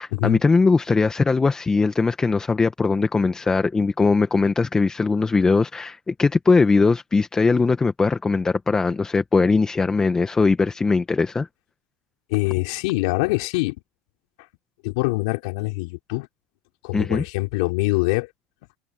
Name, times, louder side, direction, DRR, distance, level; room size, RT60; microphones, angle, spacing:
voice 1, 0.0-11.5 16.9-17.2, left 4 dB, 20° left, 1.6 m, -20 dB
voice 2, 12.3-13.7 14.8-16.3 16.8-18.3, left 25 dB, 70° left, 4.5 m, -24 dB
hypercardioid pair, 90°, 4 cm